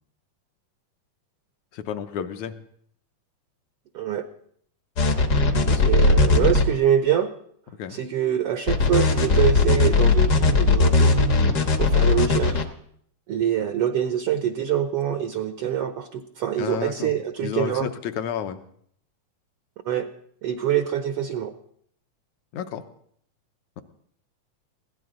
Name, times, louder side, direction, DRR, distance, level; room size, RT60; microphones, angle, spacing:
voice 1, 1.7-2.6 5.5-6.5 7.8-8.0 16.6-17.1 17.4-18.6 22.5-22.8, left 8 dB, 70° left, 8 dB, 2.2 m, -31 dB
sound 1, 5.0-6.6 8.7-12.6, left 3 dB, 55° left, 1.2 m, -18 dB
voice 2, 5.8-7.3 7.9-11.4 11.8-12.6 13.3-17.9 19.8-20.1 20.4-21.5, right 10 dB, 75° right, 8 dB, 1.4 m, -25 dB
22.0 x 16.5 x 3.9 m, 0.65 s
omnidirectional pair, 3.6 m